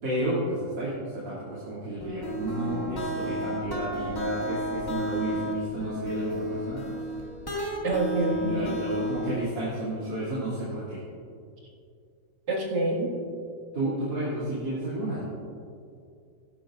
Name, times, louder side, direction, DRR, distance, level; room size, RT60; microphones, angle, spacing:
voice 1, 0.0-7.0 8.2-11.0 13.7-15.2, right 1 dB, 80° right, -9 dB, 3.4 m, -32 dB
sound 1, 2.0-9.6, equal, 10° left, 1.9 m, -32 dB
voice 2, 7.8-8.8 12.5-13.2, right 2 dB, 60° right, -4 dB, 2.5 m, -27 dB
17.5 x 11.5 x 2.5 m, 2.4 s
omnidirectional pair, 2.0 m